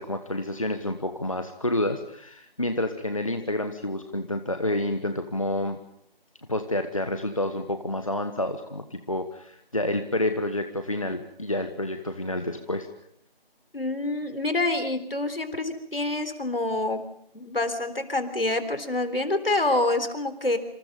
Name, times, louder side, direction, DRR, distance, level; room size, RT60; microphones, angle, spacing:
voice 1, 0.0-5.8 6.5-12.9, left 1 dB, 35° left, 7 dB, 1.3 m, -29 dB
voice 2, 13.7-17.0 17.3-20.6, left 2 dB, 70° left, 10 dB, 3.9 m, -27 dB
27.5 x 26.5 x 5.4 m, 0.69 s
figure-of-eight pair, 175°, 30 cm